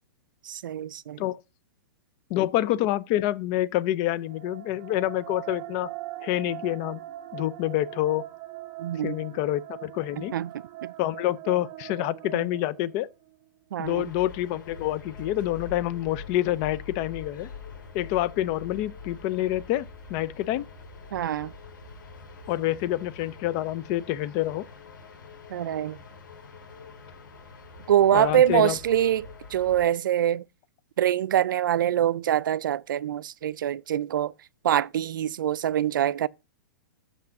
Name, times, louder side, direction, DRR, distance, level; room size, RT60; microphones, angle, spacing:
voice 1, 0.4-1.2 8.8-9.2 10.2-10.5 10.8-10.9 12.3-12.4 13.7-14.0 21.1-21.5 25.5-26.0 27.9-30.4 31.0-34.3 34.6-36.3, right 11 dB, 75° right, 0.4 m, -24 dB
voice 2, 2.3-5.9 6.2-7.0 7.3-8.2 9.0-10.3 11.0-13.1 13.8-17.5 17.9-20.7 22.5-24.6 28.1-28.7, left 14 dB, 35° left, 0.6 m, -27 dB
sound 1, 4.1-13.3, right 15 dB, 30° right, 1.0 m, -42 dB
sound 2, 13.8-29.9, left 4 dB, 80° left, 4.5 m, -44 dB
5.9 x 5.5 x 6.4 m
hypercardioid pair, 150°, 11 cm